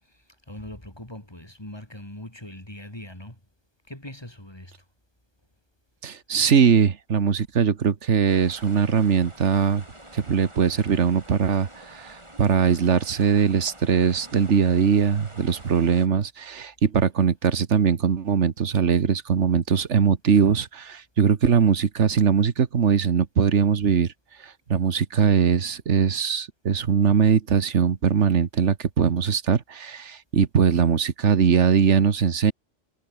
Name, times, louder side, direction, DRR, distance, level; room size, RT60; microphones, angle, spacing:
voice 1, 0.0-3.4 3.9-4.7 17.0-17.1, left 1 dB, 20° left, 4.3 m, -41 dB
voice 2, 6.0-9.8 10.1-24.1 24.4-32.5, right 7 dB, 70° right, 1.6 m, -21 dB
sound 1, 8.2-16.1, right 1 dB, 25° right, 4.7 m, -47 dB
omnidirectional pair, 1.2 m